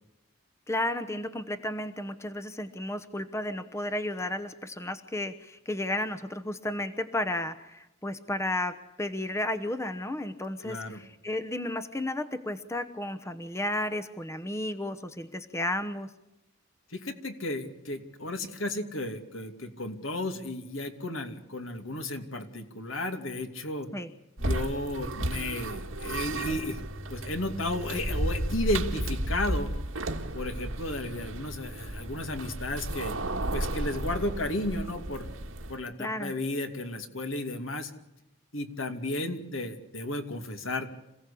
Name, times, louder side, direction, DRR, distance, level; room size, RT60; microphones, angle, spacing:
voice 1, 0.7-16.1 23.9-24.1 36.0-36.3, left 1 dB, 15° left, 10 dB, 0.9 m, -33 dB
voice 2, 10.6-11.0 16.9-23.9 24.4-26.8 27.1-29.7 30.3-33.2 33.5-35.3 35.7-37.9 38.5-40.9, left 1 dB, 75° left, 6 dB, 2.7 m, -33 dB
sound 1, 24.4-35.8, right 1 dB, 80° right, 2.0 m, -33 dB
27.0 x 16.5 x 8.5 m, 0.91 s
head